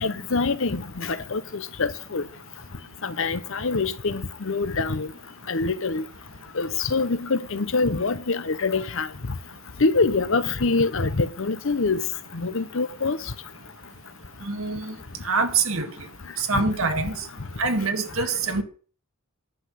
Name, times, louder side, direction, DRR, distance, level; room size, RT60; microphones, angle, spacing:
voice 1, 0.0-2.2 3.0-5.1 5.5-6.0 6.5-9.1 9.8-12.0 12.3-13.2 16.5-16.6, left 3 dB, 65° left, 0.9 m, -25 dB
voice 2, 14.4-15.0 15.2-15.9 16.4-17.2 17.6-18.6, right 4 dB, 70° right, 1.9 m, -24 dB
11.0 x 6.1 x 7.6 m
head